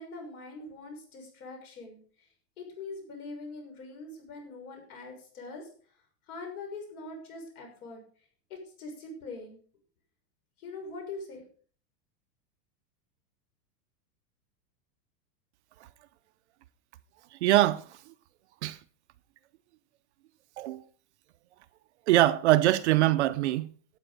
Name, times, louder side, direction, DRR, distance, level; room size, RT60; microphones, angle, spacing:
voice 1, 0.0-2.3 2.6-5.7 6.3-8.0 8.5-9.6 10.6-11.4, left 3 dB, 60° left, 6.4 m, -43 dB
voice 2, 17.3-18.0 18.6-18.8 20.6-20.8 22.1-23.7, right 15 dB, 45° right, 0.6 m, -23 dB
12.5 x 9.1 x 5.3 m
supercardioid pair, 175°, 49 cm